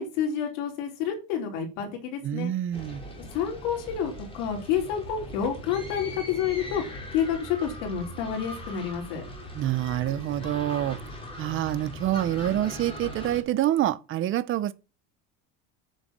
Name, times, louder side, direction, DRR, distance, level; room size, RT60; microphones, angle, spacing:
voice 1, 0.0-2.5 3.2-6.8 7.1-9.2, left 8 dB, 90° left, 4.5 m, -29 dB
voice 2, 2.2-3.0 9.5-11.0 11.4-14.7, right 12 dB, 35° right, 0.8 m, -27 dB
sound 1, 2.7-13.4, left 1 dB, 15° left, 3.2 m, -40 dB
9.6 x 6.8 x 7.5 m
cardioid pair, 170°, 37 cm